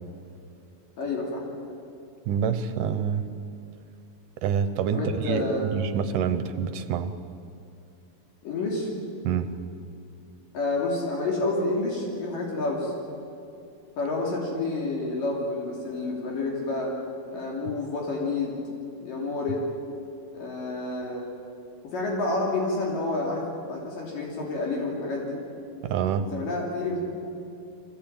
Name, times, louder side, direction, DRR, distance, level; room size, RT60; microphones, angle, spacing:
voice 1, 1.0-1.4 4.9-5.7 8.4-8.9 10.5-12.9 14.0-16.9 17.3-18.6 19.0-19.6 20.3-21.3 21.8-25.4 26.3-27.0, left 2 dB, 65° left, -1 dB, 4.4 m, -29 dB
voice 2, 2.3-3.2 4.4-7.1 9.2-9.5 25.8-26.3, right 7 dB, 70° right, 10 dB, 2.2 m, -27 dB
24.0 x 16.5 x 8.8 m, 2.6 s
omnidirectional pair, 4.2 m